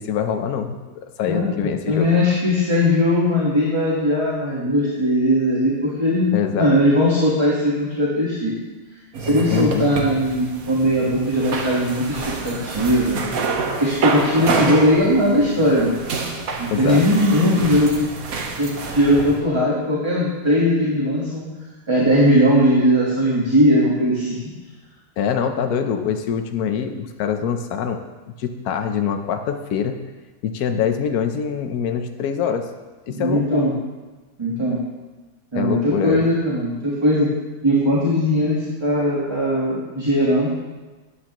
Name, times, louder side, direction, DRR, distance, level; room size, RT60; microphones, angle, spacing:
voice 1, 0.0-2.1 6.3-6.7 9.5-9.9 16.7-17.0 25.2-28.0 28.4-30.0 30.4-32.6 33.1-33.7 35.5-36.3, left 7 dB, 75° left, 6 dB, 1.3 m, -24 dB
voice 2, 1.3-6.3 6.6-8.5 9.3-13.2 13.8-15.9 16.6-18.1 18.6-21.4 21.9-24.4 33.1-33.7 34.4-34.8 35.5-37.3 37.6-40.5, equal, 20° right, -6 dB, 1.4 m, -19 dB
sound 1, 9.1-19.4, right 4 dB, 65° right, 1.4 m, -27 dB
12.5 x 9.6 x 3.0 m, 1.2 s
omnidirectional pair, 1.6 m